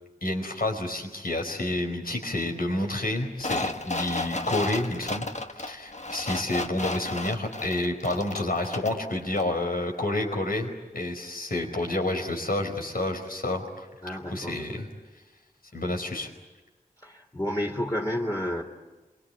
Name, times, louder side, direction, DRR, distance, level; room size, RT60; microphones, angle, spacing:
voice 1, 0.2-5.2 5.5-14.9 15.7-16.3, left 1 dB, 80° left, 3 dB, 4.6 m, -29 dB
sound 1, 3.4-9.1 9.4-9.5, left 2 dB, 50° left, 1.3 m, -33 dB
voice 2, 14.0-14.6 17.0-18.6, left 1 dB, 25° left, -2 dB, 3.0 m, -30 dB
28.0 x 23.0 x 8.6 m, 1.2 s
wide cardioid pair, 50°, 15 cm